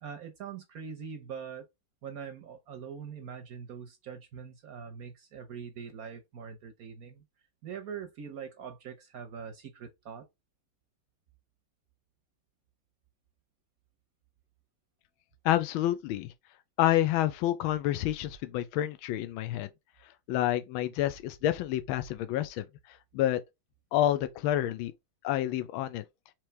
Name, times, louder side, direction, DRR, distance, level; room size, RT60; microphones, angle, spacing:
voice 1, 0.0-1.7 2.0-7.2 7.6-10.3, right 7 dB, 65° right, 0.9 m, -43 dB
voice 2, 15.4-16.3 16.8-19.7 20.3-22.6 23.1-23.4 23.9-24.9 25.2-26.0, left 13 dB, 85° left, 1.4 m, -28 dB
4.6 x 3.0 x 3.2 m
omnidirectional pair, 2.2 m